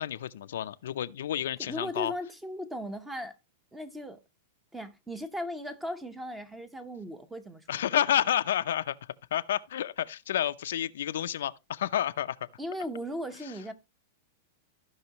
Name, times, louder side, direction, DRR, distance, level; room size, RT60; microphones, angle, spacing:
voice 1, 0.0-2.1 7.7-9.0 9.3-12.4, left 11 dB, 80° left, 0.5 m, -30 dB
voice 2, 1.6-3.4 3.7-4.2 4.7-7.8 12.6-13.7, equal, 5° right, 0.8 m, -37 dB
15.0 x 5.4 x 3.0 m
supercardioid pair, 160°, 0 cm